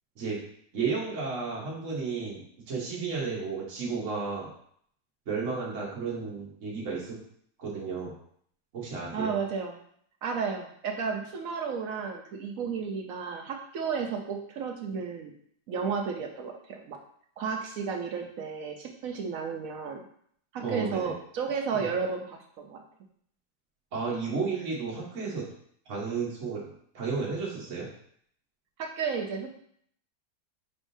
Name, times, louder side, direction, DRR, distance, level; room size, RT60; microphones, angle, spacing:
voice 1, 0.7-2.4 2.7-4.5 5.3-7.1 7.6-8.1 8.7-9.3 20.6-21.0 21.8-21.9 23.9-25.5 25.9-26.6 26.9-27.9, right 4 dB, 50° right, -5 dB, 1.3 m, -32 dB
voice 2, 9.1-9.8 10.2-15.3 15.7-17.0 17.4-20.0 20.5-22.8 28.8-29.5, right 5 dB, 70° right, 3 dB, 0.9 m, -33 dB
5.3 x 3.5 x 2.6 m, 0.63 s
omnidirectional pair, 1.7 m